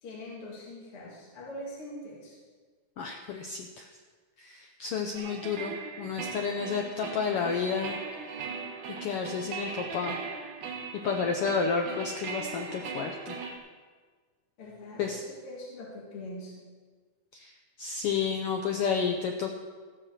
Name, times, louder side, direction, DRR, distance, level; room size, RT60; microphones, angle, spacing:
voice 1, 0.0-2.4 5.2-5.4 14.6-16.5, left 1 dB, 50° left, -5 dB, 3.0 m, -43 dB
voice 2, 3.0-3.9 4.4-8.0 8.3-8.4 9.0-10.2 11.0-13.4 15.0-15.2 17.3-17.5 17.8-19.6, left 5 dB, 75° left, 3 dB, 1.3 m, -31 dB
sound 1, 5.1-13.6, right 5 dB, 85° right, 2.6 m, -39 dB
14.0 x 6.5 x 6.6 m, 1.5 s
omnidirectional pair, 3.3 m